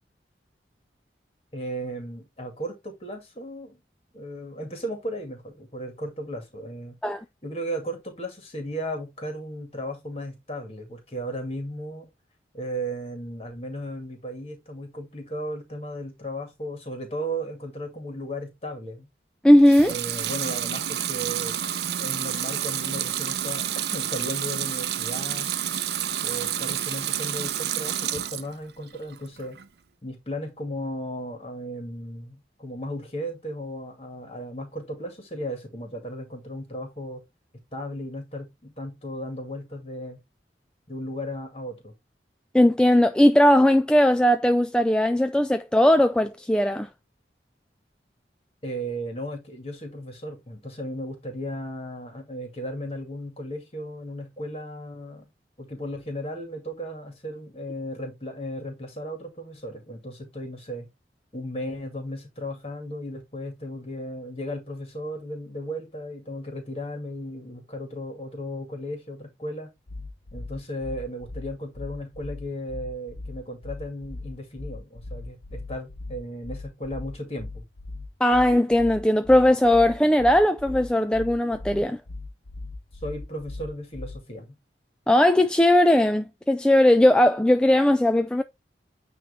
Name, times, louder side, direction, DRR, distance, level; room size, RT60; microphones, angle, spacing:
voice 1, 1.5-3.8 4.1-7.0 7.4-12.1 12.5-19.1 19.8-21.6 22.0-25.5 26.2-29.6 30.0-37.2 37.7-40.2 40.9-41.9 48.6-55.3 55.6-60.9 61.3-69.7 70.3-77.6 83.0-84.6, equal, 35° left, 2.3 m, -35 dB
voice 2, 19.4-19.9 42.5-46.9 78.2-82.0 85.1-88.4, left 1 dB, 5° left, 0.3 m, -18 dB
Water tap faucet / Sink (filling or washing) / Liquid, 19.6-28.5 28.9-29.7, right 10 dB, 65° right, 0.6 m, -29 dB
sound 1, 69.9-84.3, left 2 dB, 70° left, 1.1 m, -38 dB
9.2 x 3.1 x 3.4 m
head